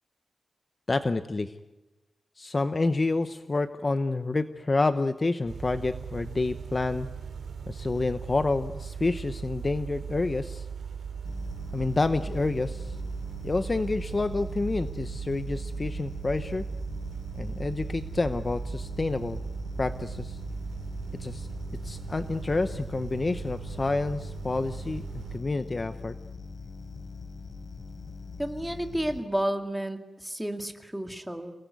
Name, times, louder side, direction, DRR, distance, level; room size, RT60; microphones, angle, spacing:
voice 1, 0.9-1.5 2.4-7.1 7.7-10.7 11.7-13.0 13.4-16.7 17.3-19.4 19.8-20.4 21.2-21.5 21.8-25.0 25.3-26.2, left 3 dB, 30° left, 10 dB, 0.8 m, -28 dB
sound 1, 5.4-25.4, right 6 dB, 85° right, 2.8 m, -38 dB
sound 2, 11.3-29.2, left 4 dB, 60° left, 3.5 m, -42 dB
voice 2, 28.4-31.5, right 1 dB, 5° right, 5 dB, 2.2 m, -31 dB
28.5 x 18.5 x 9.5 m, 1.1 s
wide cardioid pair, 150°, 0 cm